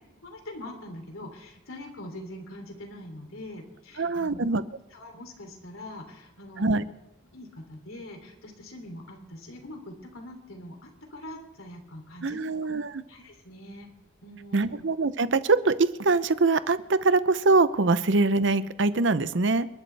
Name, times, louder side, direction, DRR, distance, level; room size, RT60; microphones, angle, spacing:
voice 1, 0.2-4.4 4.9-6.8 7.3-12.7 13.1-13.9 14.2-14.7, left 1 dB, 85° left, 3 dB, 3.0 m, -43 dB
voice 2, 4.0-4.6 6.6-6.8 12.2-13.0 14.5-19.7, right 3 dB, 60° right, 14 dB, 0.7 m, -23 dB
28.5 x 12.0 x 3.4 m, 0.94 s
head